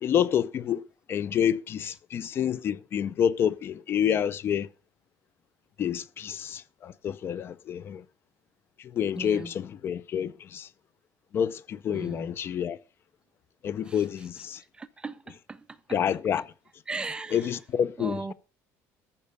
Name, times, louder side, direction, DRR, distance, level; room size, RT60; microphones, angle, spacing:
voice 1, 0.0-4.7 5.8-8.0 8.8-10.7 11.3-12.8 13.6-14.6 15.9-16.5 17.3-18.3, left 9 dB, 35° left, 0.6 m, -28 dB
voice 2, 9.2-9.5 11.9-12.3 14.8-15.6 16.9-17.4 18.0-18.3, right 3 dB, 15° right, 0.6 m, -37 dB
14.0 x 5.7 x 6.7 m
cardioid pair, 150°, 7 cm